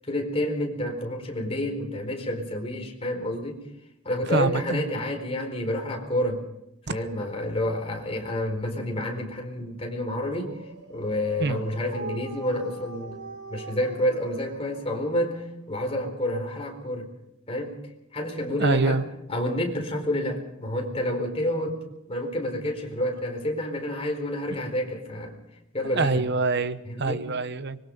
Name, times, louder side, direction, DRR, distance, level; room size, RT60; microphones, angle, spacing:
voice 1, 0.0-3.6 4.0-6.4 6.9-10.6 10.9-13.2 13.5-15.4 15.7-17.1 17.5-17.7 18.1-19.0 19.3-21.8 22.1-25.3 25.7-26.2 26.9-27.2, left 1 dB, 25° left, 2 dB, 4.5 m, -29 dB
voice 2, 4.3-4.9 11.4-11.6 18.6-19.0 25.8-27.8, right 3 dB, 50° right, 12 dB, 1.0 m, -25 dB
Dog, 10.1-15.8, right 2 dB, 90° right, 4.0 m, -41 dB
24.5 x 22.0 x 5.4 m, 0.85 s
head